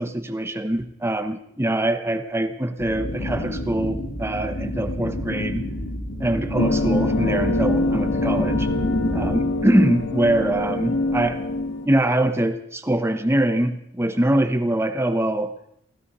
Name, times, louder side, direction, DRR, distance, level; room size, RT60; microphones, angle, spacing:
voice 1, 0.0-5.7 6.2-8.7 9.1-11.4 11.9-15.5, right 1 dB, 15° right, 6 dB, 1.0 m, -23 dB
sound 1, 2.8-9.4, left 1 dB, 90° left, 3.5 m, -29 dB
sound 2, 6.6-11.9, left 2 dB, 65° left, 1.5 m, -23 dB
16.0 x 15.5 x 5.5 m, 0.74 s
head